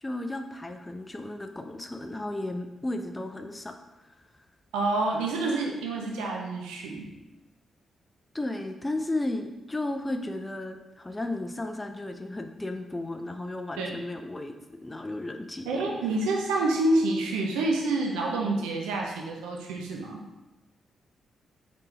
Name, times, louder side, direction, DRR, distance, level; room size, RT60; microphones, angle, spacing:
voice 1, 0.0-3.7 4.0-4.1 8.3-15.8, left 2 dB, 20° left, 6 dB, 0.4 m, -34 dB
voice 2, 4.7-7.1 13.8-14.0 15.7-20.2, right 2 dB, 80° right, 0 dB, 0.5 m, -28 dB
4.0 x 3.6 x 2.7 m, 1.0 s
hypercardioid pair, 40°, 0 cm